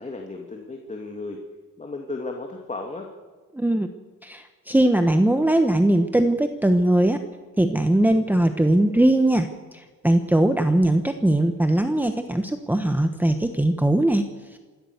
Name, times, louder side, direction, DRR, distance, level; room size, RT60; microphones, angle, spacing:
voice 1, 0.0-1.4 1.8-3.1, left 3 dB, 20° left, 2 dB, 2.4 m, -34 dB
voice 2, 3.5-3.9 4.2-7.2 7.6-14.6, right 1 dB, 5° right, 7 dB, 1.1 m, -20 dB
27.0 x 13.0 x 8.1 m, 1.4 s
cardioid pair, 115°, 32 cm